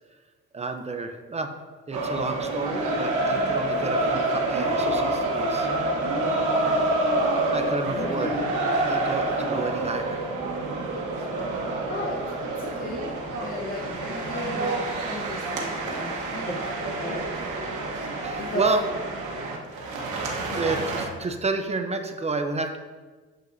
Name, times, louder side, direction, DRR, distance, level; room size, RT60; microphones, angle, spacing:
voice 1, 0.5-1.5 1.9-5.7 7.5-8.3 8.9-10.2 10.5-10.6 18.2-18.8 20.6-22.8, right 3 dB, 20° right, 6 dB, 0.6 m, -30 dB
sound 1, 1.9-21.0, right 2 dB, 80° right, 1.2 m, -27 dB
voice 2, 7.9-8.5 11.0-11.3 11.9-13.2 13.4-16.7 17.0-17.3 18.4-18.7 20.4-20.7, left 2 dB, 30° left, -2 dB, 0.9 m, -35 dB
7.4 x 5.2 x 2.6 m, 1.4 s
cardioid pair, 90°, 30 cm